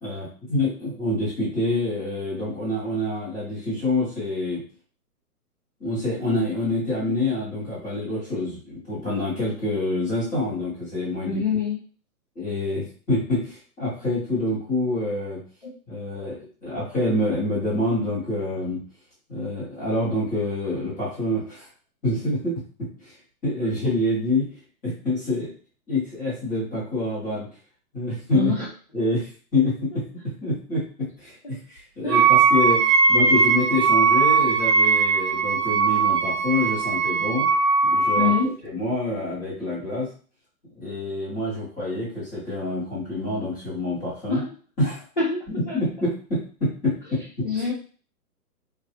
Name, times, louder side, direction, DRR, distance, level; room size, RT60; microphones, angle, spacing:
voice 1, 0.0-4.6 5.8-11.4 12.3-15.4 15.9-18.8 19.3-21.7 22.0-23.1 23.4-24.5 24.8-25.5 25.9-27.5 27.9-28.5 28.9-37.5 37.8-38.3 38.6-40.1 40.7-44.4 44.8-45.0 45.5-47.6, left 2 dB, 5° left, -10 dB, 0.9 m, -27 dB
voice 2, 11.2-11.8 15.6-15.7 28.3-28.7 31.4-31.6 32.0-32.2 38.2-38.6 44.3-44.5 45.2-45.8 47.4-47.7, left 4 dB, 35° left, -4 dB, 0.4 m, -25 dB
Wind instrument woodwind instrument, 32.1-38.4, right 5 dB, 75° right, 0.6 m, -19 dB
3.4 x 2.3 x 2.8 m, 0.40 s
hypercardioid pair, 165°, 47 cm